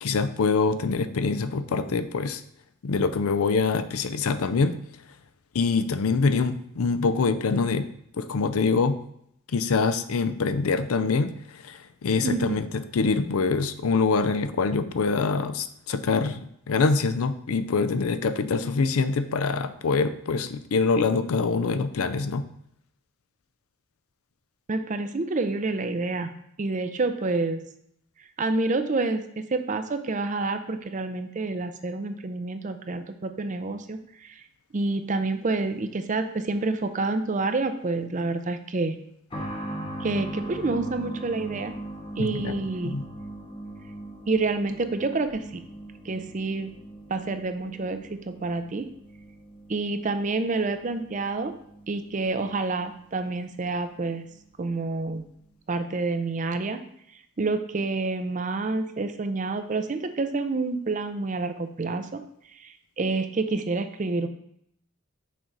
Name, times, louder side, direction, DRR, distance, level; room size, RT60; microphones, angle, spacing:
voice 1, 0.0-2.4 2.8-4.8 5.5-7.9 8.2-9.0 9.5-22.4 42.2-43.1, left 4 dB, 85° left, 11 dB, 0.5 m, -25 dB
voice 2, 12.2-12.6 24.7-26.3 26.6-27.6 28.4-34.4 34.7-38.9 40.0-41.7 42.2-42.9 44.3-45.6 46.0-46.7 47.1-48.9 49.7-51.5 51.9-54.2 54.6-55.2 55.7-56.8 57.4-62.2 62.6-64.3, right 3 dB, 35° right, 9 dB, 0.5 m, -28 dB
sound 1, 39.3-53.7 54.0-54.1 55.1-55.2, right 1 dB, 25° left, 0.7 m, -40 dB
6.4 x 4.6 x 3.9 m, 0.72 s
head